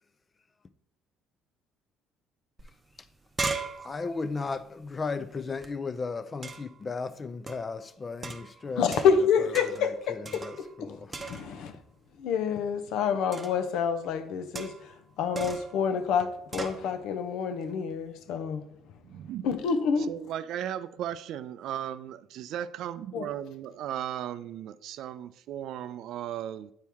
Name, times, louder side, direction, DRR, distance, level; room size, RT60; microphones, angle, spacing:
sound 1, 2.6-2.7 3.0-5.7 6.4-6.8 7.5-7.7 8.2-9.3 9.5-9.9 10.3-10.8 11.1-11.7 13.3-13.7 14.6-15.0 15.4-15.8 16.5-16.8, right 4 dB, 25° right, 0.7 m, -38 dB
voice 1, 3.9-8.9 9.8-11.2, left 4 dB, 30° left, 0.5 m, -35 dB
voice 2, 8.8-11.8 12.2-18.6 19.4-20.1 23.1-23.3, left 6 dB, 75° left, 0.7 m, -28 dB
voice 3, 19.0-19.5 20.1-26.7, right 11 dB, 70° right, 0.4 m, -36 dB
8.5 x 4.5 x 3.5 m
cardioid pair, 110°, 0 cm